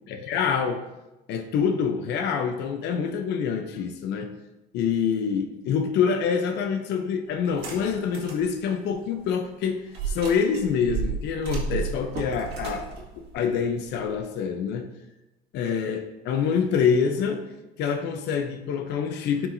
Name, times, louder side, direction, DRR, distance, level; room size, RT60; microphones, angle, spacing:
voice 1, 0.1-0.9 1.3-4.3 4.7-12.9 13.2-14.9 15.5-17.5 17.8-19.5, left 6 dB, 80° left, 5 dB, 0.7 m, -26 dB
sound 1, 7.5-8.5 8.9-9.0 9.9-14.2, right 5 dB, 80° right, 1.9 m, -33 dB
11.5 x 4.6 x 2.7 m, 0.99 s
cardioid pair, 110°, 17 cm